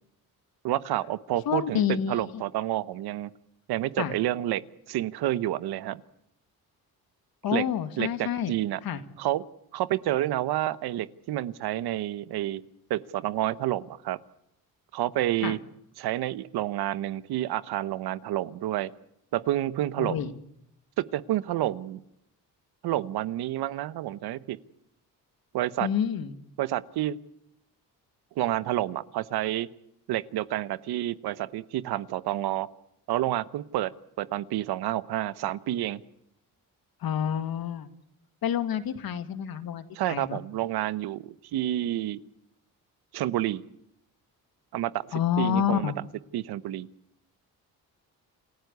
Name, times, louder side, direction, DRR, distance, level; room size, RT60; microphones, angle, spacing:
voice 1, 0.6-3.3 3.7-6.0 7.5-7.6 8.0-8.8 9.2-9.4 9.7-12.6 12.9-14.2 14.9-15.6 16.0-18.9 19.3-20.2 21.0-22.0 22.8-24.6 25.5-25.9 26.6-27.2 28.4-29.7 30.1-32.7 33.1-36.0 39.9-42.2 43.1-43.6 44.7-45.9 46.3-46.9, right 14 dB, 90° right, 17 dB, 1.1 m, -29 dB
voice 2, 1.5-2.4 4.0-4.2 7.4-8.5 8.8-9.0 15.4-15.6 20.0-20.3 25.8-26.3 37.0-37.9 38.4-40.4 45.1-45.9, left 9 dB, 70° left, 11 dB, 2.2 m, -28 dB
28.5 x 15.0 x 8.2 m, 0.78 s
cardioid pair, 100°, 37 cm